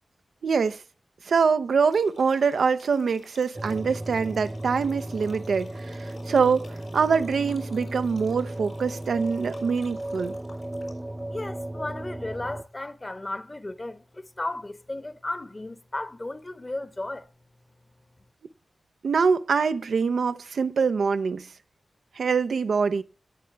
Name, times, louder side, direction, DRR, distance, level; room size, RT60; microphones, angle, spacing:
voice 1, 0.4-0.8 1.3-6.7 6.9-10.3 19.0-21.5 22.2-23.0, right 5 dB, 85° right, 0.5 m, -24 dB
sound 1, 1.9-11.2, left 3 dB, 85° left, 5.0 m, -53 dB
sound 2, 3.6-12.6, right 1 dB, 25° right, 0.6 m, -35 dB
voice 2, 11.3-17.3, left 2 dB, 35° left, 1.1 m, -34 dB
18.0 x 6.7 x 3.3 m
cardioid pair, 45°, 0 cm